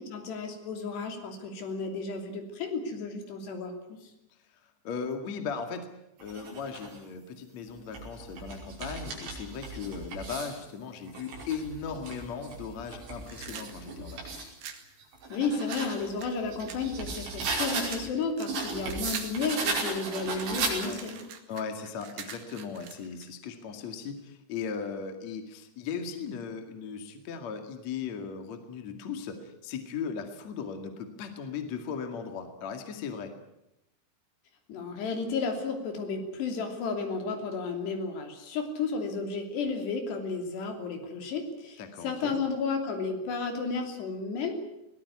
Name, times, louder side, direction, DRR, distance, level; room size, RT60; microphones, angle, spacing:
voice 1, 0.0-4.1 15.3-21.2 34.7-44.6, left 4 dB, 65° left, 5 dB, 5.1 m, -33 dB
voice 2, 4.6-5.9 6.2-14.5 20.8-21.0 21.5-33.3 41.8-42.4, left 6 dB, 45° left, 6 dB, 2.7 m, -37 dB
sound 1, 6.2-7.0 7.7-10.6 11.1-14.5 15.0-18.1 18.5-21.2, right 3 dB, 90° right, 7.9 m, -36 dB
sound 2, 13.2-14.9 15.7-17.5 17.8-19.4 19.7-23.3, right 8 dB, 60° right, 3.6 m, -43 dB
21.5 x 19.0 x 9.5 m, 0.87 s
omnidirectional pair, 5.2 m